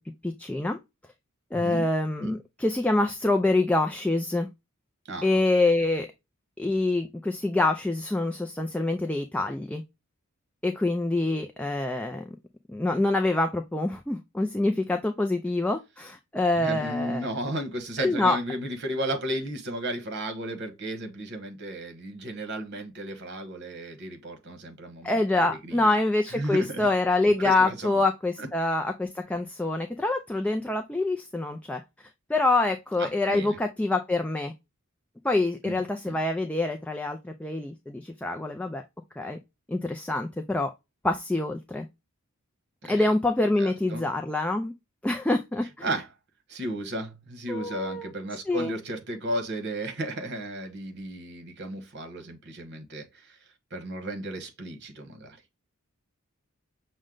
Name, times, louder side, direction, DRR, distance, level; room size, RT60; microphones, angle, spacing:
voice 1, 0.2-0.8 1.5-4.5 5.2-6.1 6.6-9.8 10.6-12.2 12.7-17.3 18.0-18.4 25.0-31.8 32.3-34.5 35.2-38.8 39.2-39.4 39.7-40.7 41.0-41.9 42.9-44.7 45.0-45.9 47.5-48.1 48.5-48.8, left 2 dB, 5° left, 0.3 m, -26 dB
voice 2, 1.5-1.8 2.2-2.4 5.1-5.3 16.5-25.9 26.3-26.9 27.4-28.0 28.4-28.5 33.0-33.6 35.6-36.2 42.8-43.1 43.6-44.0 45.8-46.1 46.5-53.4 53.7-55.4, right 1 dB, 55° right, 1.1 m, -34 dB
6.2 x 2.2 x 3.7 m
head